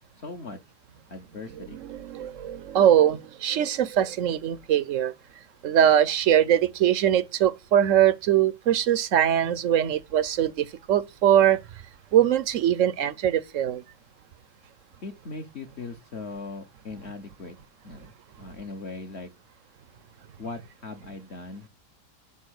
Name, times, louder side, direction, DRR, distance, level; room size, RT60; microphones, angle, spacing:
voice 1, 0.2-0.6 1.1-1.8 15.0-17.6 17.8-19.3 20.4-21.7, left 3 dB, 45° left, 1.2 m, -39 dB
voice 2, 1.7-5.1 5.6-11.6 12.1-13.8, right 10 dB, 60° right, 0.9 m, -22 dB
11.5 x 5.5 x 6.4 m
omnidirectional pair, 1.8 m